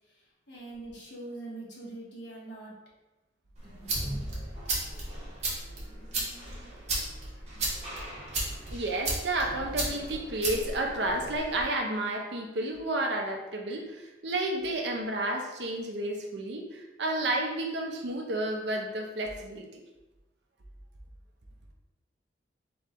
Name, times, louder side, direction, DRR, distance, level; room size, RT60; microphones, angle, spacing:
voice 1, 0.5-2.7 3.6-3.9, right 2 dB, 65° left, -5 dB, 1.4 m, -43 dB
sound 1, 3.5-11.6, right 2 dB, 35° right, 1.2 m, -35 dB
voice 2, 8.7-19.8, right 1 dB, 65° right, 2 dB, 0.7 m, -31 dB
3.8 x 3.2 x 3.7 m, 1.0 s
head